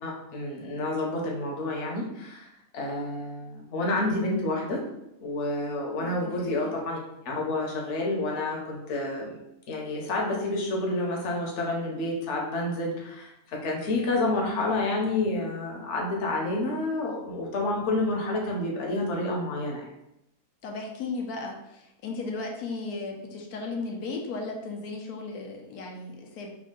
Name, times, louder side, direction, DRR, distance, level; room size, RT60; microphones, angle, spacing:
voice 1, 0.0-4.8 5.2-7.0 7.2-9.3 9.7-19.9, left 2 dB, 60° left, -1 dB, 1.0 m, -29 dB
voice 2, 6.0-6.8 20.6-26.5, left 3 dB, 90° left, 1 dB, 1.1 m, -36 dB
3.5 x 2.4 x 3.7 m, 0.86 s
omnidirectional pair, 1.5 m